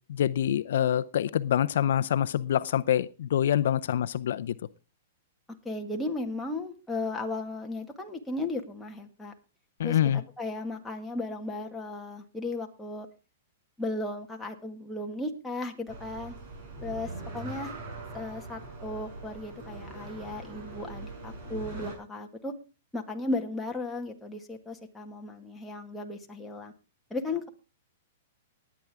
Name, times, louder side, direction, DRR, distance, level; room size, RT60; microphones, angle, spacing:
voice 1, 0.1-4.6 9.8-10.2, left 10 dB, 70° left, 0.6 m, -26 dB
voice 2, 5.6-9.3 9.8-13.1 13.8-16.4 16.8-17.7 18.1-22.5 22.9-26.7 27.1-27.5, left 2 dB, 5° left, 1.8 m, -35 dB
sound 1, 15.9-21.9, right 2 dB, 40° right, 6.1 m, -41 dB
19.5 x 9.5 x 3.5 m
hypercardioid pair, 155°, 0 cm